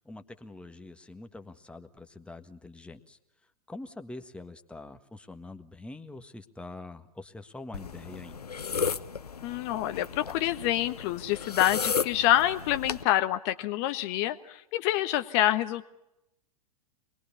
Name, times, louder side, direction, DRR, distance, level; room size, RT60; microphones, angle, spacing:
voice 1, 0.0-3.2 3.7-8.4, left 2 dB, 5° left, 7 dB, 1.6 m, -44 dB
sound 1, 7.7-13.0, left 6 dB, 85° left, 0.9 m, -34 dB
voice 2, 9.4-15.9, left 13 dB, 45° left, 10 dB, 1.3 m, -27 dB
26.0 x 21.0 x 6.9 m, 0.87 s
figure-of-eight pair, 95°, 19 cm